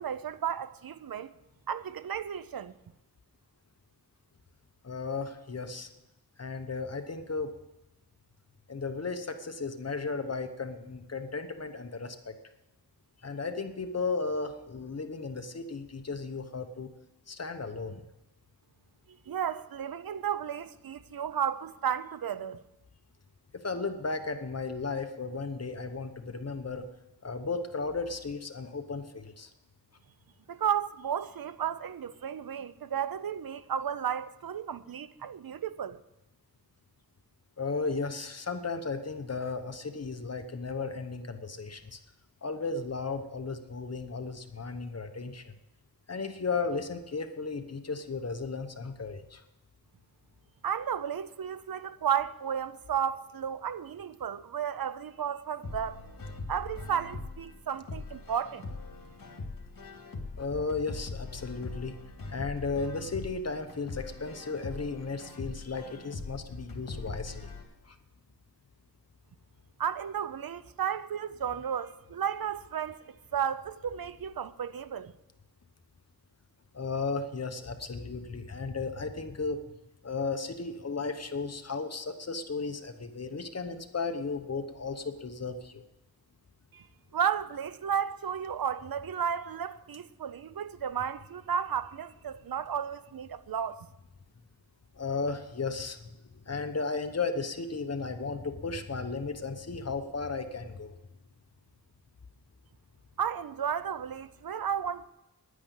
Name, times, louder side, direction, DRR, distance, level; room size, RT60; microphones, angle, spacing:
voice 1, 0.0-1.3 1.7-2.7 19.3-22.6 30.5-36.0 50.6-56.0 56.5-58.7 69.8-75.1 86.7-86.9 87.1-93.9 103.2-105.0, right 8 dB, 65° right, 0.7 m, -33 dB
voice 2, 4.8-5.9 6.4-7.5 8.7-12.4 13.2-16.9 17.3-18.0 23.5-26.9 27.2-29.5 37.6-42.0 42.4-45.5 46.1-49.4 60.4-61.9 62.3-67.5 67.8-68.0 76.7-79.6 80.0-85.8 95.0-96.2 96.5-101.0, left 4 dB, 40° left, 1.0 m, -35 dB
sound 1, 55.6-67.6, left 3 dB, 60° left, 2.8 m, -41 dB
10.5 x 9.8 x 8.2 m
wide cardioid pair, 125°, 38 cm